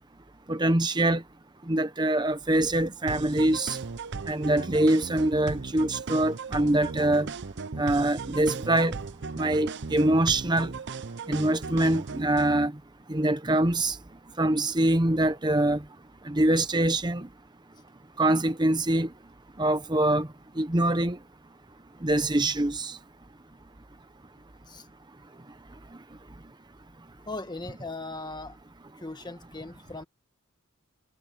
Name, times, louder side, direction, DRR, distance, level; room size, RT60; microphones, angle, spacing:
voice 1, 0.5-1.2 1.6-3.8 4.2-7.3 7.7-9.0 9.3-10.7 11.3-12.8 13.1-14.0 14.4-15.9 16.2-17.3 18.2-19.1 19.6-21.2 22.0-23.0 25.7-26.4, right 1 dB, 20° right, 0.9 m, -24 dB
sound 1, 3.1-12.7, right 4 dB, 55° right, 0.7 m, -37 dB
voice 2, 27.3-28.6 29.0-30.0, left 2 dB, 20° left, 1.7 m, -38 dB
head